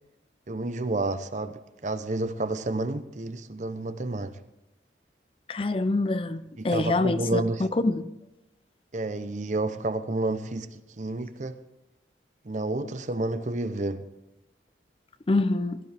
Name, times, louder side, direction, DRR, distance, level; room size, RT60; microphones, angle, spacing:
voice 1, 0.5-4.4 6.6-7.6 8.9-11.6 12.4-14.0, right 2 dB, 40° right, 0.7 m, -30 dB
voice 2, 5.5-8.1 12.8-12.9 15.3-15.8, left 2 dB, 30° left, 0.5 m, -26 dB
16.5 x 13.5 x 3.4 m
head